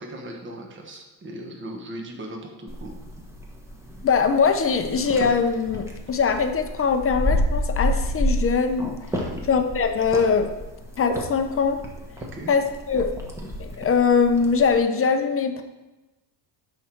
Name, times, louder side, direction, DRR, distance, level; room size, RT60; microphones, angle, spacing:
voice 1, 0.0-3.1 9.1-9.4 12.2-12.5, right 1 dB, 25° right, 1 dB, 1.4 m, -38 dB
sound 1, 2.7-14.8, equal, 5° right, 1.2 m, -30 dB
voice 2, 4.0-8.9 9.5-10.5 11.0-11.8 12.5-13.1 13.6-15.6, left 5 dB, 30° left, 7 dB, 0.7 m, -22 dB
10.5 x 3.9 x 4.5 m, 1.1 s
cardioid pair, 110°, 43 cm